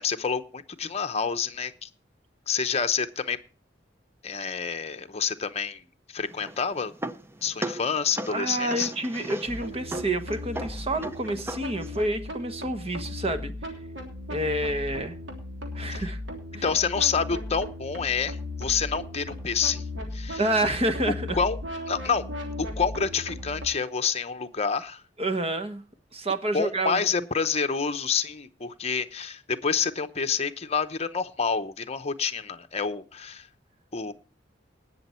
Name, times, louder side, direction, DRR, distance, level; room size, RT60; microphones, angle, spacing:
voice 1, 0.0-1.9 2.5-3.4 4.2-6.9 7.4-8.9 15.9-16.0 16.6-19.8 20.1-20.4 21.1-21.6 21.9-22.2 22.6-25.0 26.5-33.5 33.9-34.1, left 6 dB, 35° left, 9 dB, 0.8 m, -28 dB
sound 1, 6.2-12.0, right 1 dB, 15° right, 0.6 m, -38 dB
voice 2, 8.3-13.5 14.3-15.2 15.7-16.2 16.5-16.6 20.4-21.4 25.2-25.8 26.1-27.1, right 1 dB, 30° right, 9 dB, 1.2 m, -28 dB
sound 2, 9.5-23.7, left 1 dB, 75° right, 3.4 m, -36 dB
19.0 x 6.9 x 4.3 m, 0.35 s
head